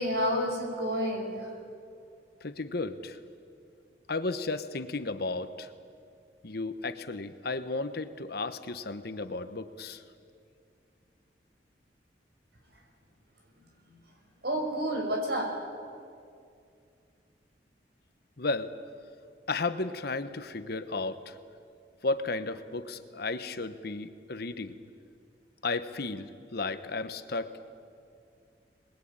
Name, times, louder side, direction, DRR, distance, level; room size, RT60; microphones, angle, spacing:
voice 1, 0.0-1.5 13.9-14.0 14.4-15.7, equal, 65° right, 2 dB, 5.7 m, -30 dB
voice 2, 2.4-3.2 4.1-5.7 6.4-10.0 18.4-18.7 19.5-21.4 22.0-24.8 25.6-27.5, left 3 dB, 60° left, 10 dB, 1.1 m, -34 dB
23.5 x 21.0 x 8.8 m, 2.4 s
head